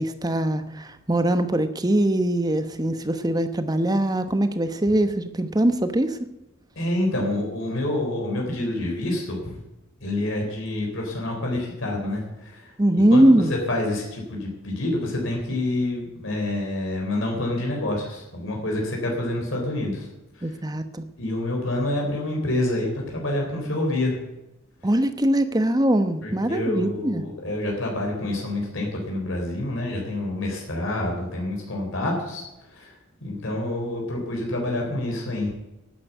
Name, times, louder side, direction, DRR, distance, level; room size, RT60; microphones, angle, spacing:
voice 1, 0.0-6.2 12.8-13.5 20.4-21.0 24.8-27.2, right 1 dB, 20° right, 10 dB, 1.0 m, -22 dB
voice 2, 6.8-9.6 10.0-12.7 13.1-13.3 13.7-20.1 20.4-20.5 21.2-24.1 26.2-32.4 32.7-32.9 33.2-35.5, left 1 dB, 65° left, 0 dB, 3.9 m, -27 dB
12.0 x 9.8 x 8.1 m, 0.97 s
head